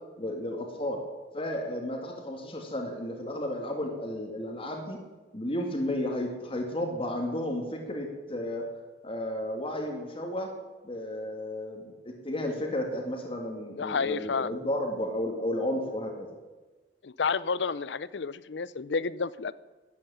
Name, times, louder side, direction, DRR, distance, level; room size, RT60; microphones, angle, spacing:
voice 1, 0.2-1.0 1.3-5.0 5.3-8.7 9.0-10.5 10.8-16.3, left 1 dB, 30° left, 2 dB, 2.1 m, -33 dB
voice 2, 13.8-14.5 17.0-19.5, left 5 dB, 85° left, 18 dB, 0.6 m, -30 dB
12.5 x 9.1 x 10.0 m, 1.2 s
head